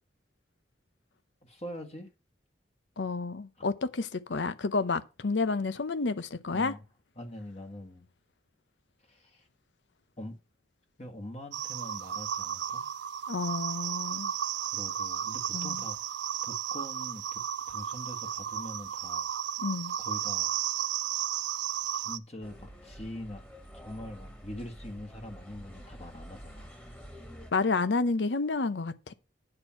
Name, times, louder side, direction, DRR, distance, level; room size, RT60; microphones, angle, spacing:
voice 1, 1.4-2.1 3.6-3.7 6.5-6.8 7.2-8.1 9.1-9.5 10.2-10.4 11.0-12.8 14.7-16.1 16.4-17.4 17.7-19.3 20.0-20.5 21.9-23.4 23.7-26.7, left 1 dB, 35° left, 1.7 m, -43 dB
voice 2, 3.0-6.7 13.3-14.3 15.5-15.8 19.6-20.0 27.5-29.1, left 3 dB, 85° left, 0.8 m, -30 dB
sound 1, 11.5-22.2, right 10 dB, 80° right, 0.4 m, -34 dB
sound 2, 22.4-27.5, equal, 10° left, 1.7 m, -48 dB
9.7 x 4.5 x 5.8 m
head